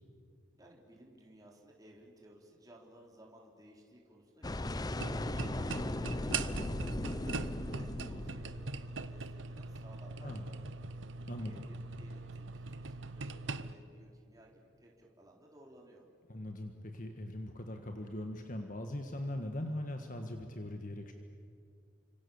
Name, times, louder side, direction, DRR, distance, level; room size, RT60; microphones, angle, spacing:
voice 1, 0.6-16.0, right 1 dB, 20° right, -2 dB, 3.9 m, -59 dB
sound 1, 4.4-9.6, left 1 dB, 20° left, 0.6 m, -38 dB
sound 2, 5.0-13.7, right 3 dB, 80° right, 1.0 m, -41 dB
voice 2, 16.3-21.1, left 1 dB, 45° left, 4 dB, 1.6 m, -40 dB
30.0 x 26.0 x 7.2 m, 2.3 s
head